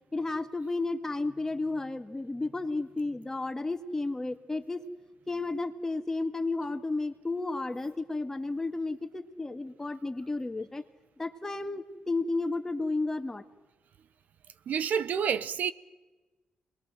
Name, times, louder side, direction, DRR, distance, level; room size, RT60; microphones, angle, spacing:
voice 1, 0.1-4.8 5.3-10.8 11.2-13.4, left 2 dB, 15° left, 1.9 m, -32 dB
voice 2, 14.7-15.7, right 7 dB, 70° right, 0.8 m, -28 dB
27.0 x 21.0 x 7.7 m
cardioid pair, 95°, 3 cm